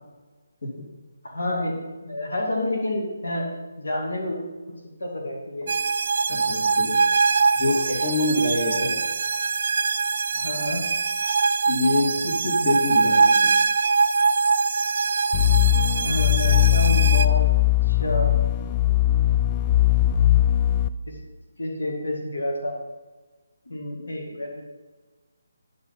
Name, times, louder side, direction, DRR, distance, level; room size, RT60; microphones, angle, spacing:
voice 1, 1.2-3.5 3.8-4.4 5.0-5.7 8.3-8.4 10.3-10.9 16.0-17.5 17.8-18.3 21.1-21.2 21.6-22.8 23.7-24.6, left 1 dB, 70° left, -1 dB, 2.2 m, -29 dB
sound 1, 5.7-17.3, right 4 dB, 50° right, 0.3 m, -23 dB
voice 2, 6.3-7.0 7.5-9.0 11.7-13.6, left 2 dB, 50° left, -9 dB, 2.5 m, -26 dB
sound 2, 15.3-20.9, left 13 dB, 25° left, 0.3 m, -19 dB
10.5 x 4.0 x 5.6 m, 1.3 s
figure-of-eight pair, 145°, 0 cm